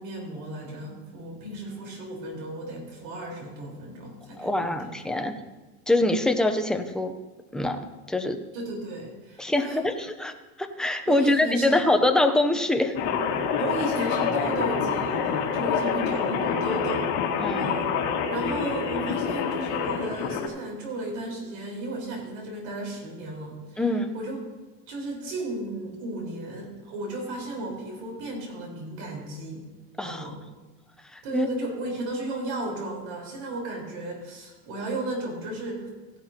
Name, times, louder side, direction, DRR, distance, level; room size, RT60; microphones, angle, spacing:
voice 1, 0.0-5.3 8.5-9.8 11.1-11.9 13.6-17.1 17.6-17.9 18.3-24.4 24.9-29.6 30.0-30.4 31.2-35.9, right 2 dB, 75° right, -1 dB, 4.3 m, -34 dB
voice 2, 4.4-5.3 5.9-7.1 7.5-8.4 9.4-10.3 10.6-13.0 17.4-17.7 23.8-24.1 30.0-30.3 31.1-31.5, left 2 dB, ahead, 5 dB, 0.6 m, -24 dB
sound 1, 12.9-20.5, left 6 dB, 55° left, 2.0 m, -27 dB
15.5 x 11.0 x 2.9 m, 1.1 s
supercardioid pair, 140°, 33 cm